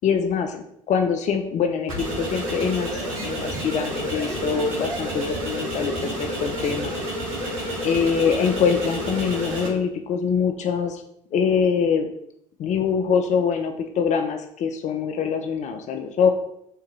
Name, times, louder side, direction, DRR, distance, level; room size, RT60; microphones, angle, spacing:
voice 1, 0.0-6.9 7.4-7.5 7.8-11.0 11.3-12.1 12.6-16.3, left 6 dB, 45° left, 6 dB, 0.5 m, -24 dB
sound 1, 1.9-9.7, equal, 75° right, 1.1 m, -29 dB
3.6 x 2.8 x 4.7 m, 0.74 s
figure-of-eight pair, 55°, 17 cm